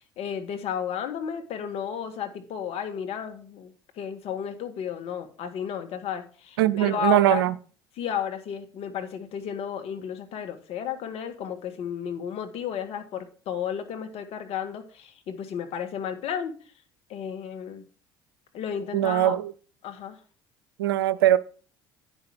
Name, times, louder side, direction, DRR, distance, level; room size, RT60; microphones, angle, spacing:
voice 1, 0.0-7.5 8.0-16.5 17.1-17.8 18.5-19.4 19.8-20.2, left 8 dB, 55° left, 1.7 m, -33 dB
voice 2, 6.6-7.5 18.9-19.5 20.8-21.4, right 13 dB, 80° right, 0.5 m, -21 dB
9.3 x 5.6 x 5.9 m
hypercardioid pair, 65°, 12 cm